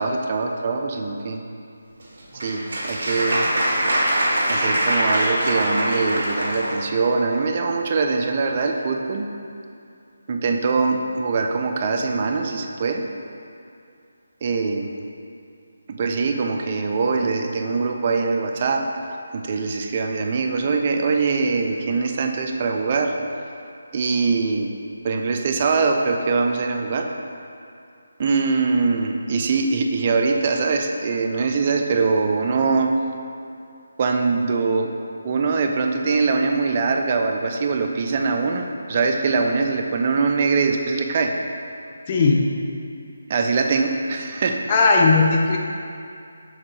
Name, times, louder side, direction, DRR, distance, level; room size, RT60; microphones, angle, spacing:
voice 1, 0.0-1.4 2.3-3.5 4.5-9.3 10.3-13.1 14.4-15.0 15.9-18.9 19.3-23.2 23.9-24.7 25.0-27.1 28.2-33.0 34.0-34.9 35.2-41.4 43.3-44.6, right 4 dB, 35° right, 3 dB, 0.5 m, -22 dB
Applause, 2.0-6.8, right 1 dB, 60° right, 1.3 m, -23 dB
voice 2, 42.1-42.4 44.7-45.6, left 3 dB, 30° left, 0 dB, 0.7 m, -16 dB
6.4 x 3.7 x 4.6 m, 2.5 s
figure-of-eight pair, 160°, 0 cm